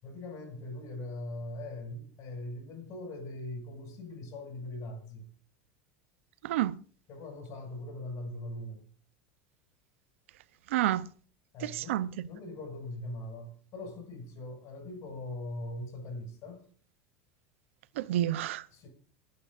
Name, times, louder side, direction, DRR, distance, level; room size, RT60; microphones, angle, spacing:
voice 1, 0.0-5.3 7.1-8.8 11.5-16.7 18.7-18.9, left 1 dB, 50° left, 6.8 m, -41 dB
voice 2, 6.4-6.8 10.7-11.0 11.6-12.1 18.0-18.6, right 13 dB, 80° right, 0.7 m, -29 dB
29.0 x 9.7 x 2.6 m
supercardioid pair, 105°, 7 cm